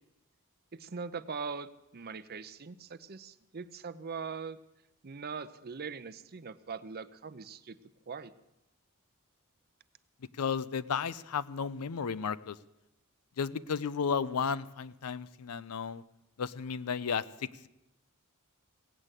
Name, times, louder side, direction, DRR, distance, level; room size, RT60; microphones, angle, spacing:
voice 1, 0.7-4.6 5.0-7.8 8.1-8.3, right 5 dB, 45° right, 12 dB, 0.6 m, -41 dB
voice 2, 10.4-12.6 13.4-16.0 16.4-17.7, left 6 dB, 90° left, 16 dB, 0.5 m, -33 dB
16.5 x 9.0 x 8.2 m, 0.90 s
head